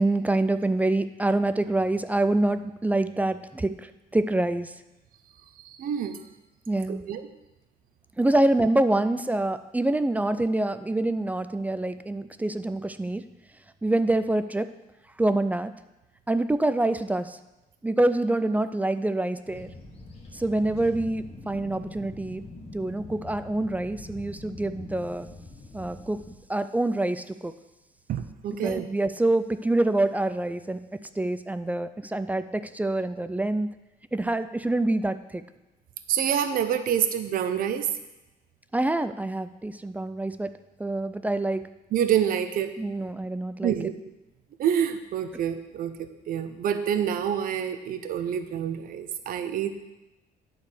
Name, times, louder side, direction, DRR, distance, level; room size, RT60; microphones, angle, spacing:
voice 1, 0.0-4.7 6.7-7.1 8.2-13.2 13.8-14.7 15.2-15.7 16.3-17.4 17.8-19.7 20.3-22.4 22.7-25.3 25.7-26.2 26.5-27.5 28.6-30.8 31.2-33.7 34.1-35.4 38.7-40.5 40.8-41.7 42.8-43.7, right 2 dB, 10° right, 12 dB, 0.3 m, -26 dB
voice 2, 5.7-6.2 6.9-7.2 28.1-28.9 36.1-37.9 41.9-42.7 43.6-43.9 44.6-49.7, right 9 dB, 55° right, 9 dB, 0.7 m, -27 dB
sound 1, 19.5-26.4, left 2 dB, 35° left, 1.8 m, -44 dB
9.8 x 4.1 x 6.6 m, 1.0 s
cardioid pair, 110°, 17 cm